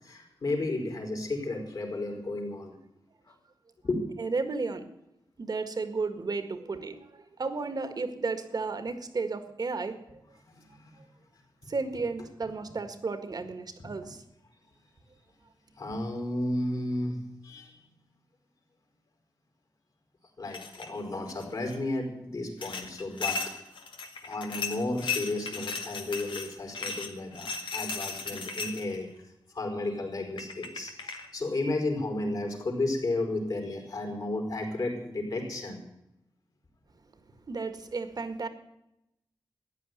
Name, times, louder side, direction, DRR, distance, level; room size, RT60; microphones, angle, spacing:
voice 1, 0.0-2.7 3.8-4.0 10.5-11.0 14.0-14.1 15.8-17.8 20.4-23.4 24.2-29.1 29.5-35.8, left 2 dB, 55° left, 2 dB, 4.7 m, -33 dB
voice 2, 4.2-4.9 5.4-10.2 11.7-14.2 37.5-38.5, right 4 dB, 50° right, 9 dB, 1.7 m, -33 dB
sound 1, 20.5-20.9 21.3-21.8 22.6-29.0 30.0-30.1 30.4-31.3, left 5 dB, 90° left, 2.0 m, -36 dB
14.5 x 10.0 x 9.4 m, 0.85 s
wide cardioid pair, 95°, 8 cm